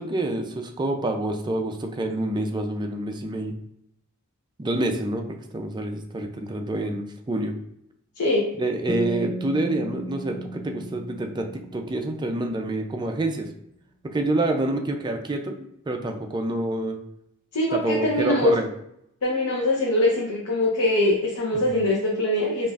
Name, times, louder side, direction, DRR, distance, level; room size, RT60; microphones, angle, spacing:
voice 1, 0.0-3.5 4.6-7.5 8.5-13.5 14.0-17.0 17.7-18.7 21.5-21.6, right 2 dB, 20° right, 3 dB, 0.4 m, -27 dB
sound 1, 8.9-12.3, right 2 dB, 55° right, 0.7 m, -35 dB
voice 2, 17.5-18.5 19.2-22.7, left 1 dB, 80° left, -3 dB, 0.7 m, -22 dB
5.1 x 2.5 x 2.4 m, 0.76 s
head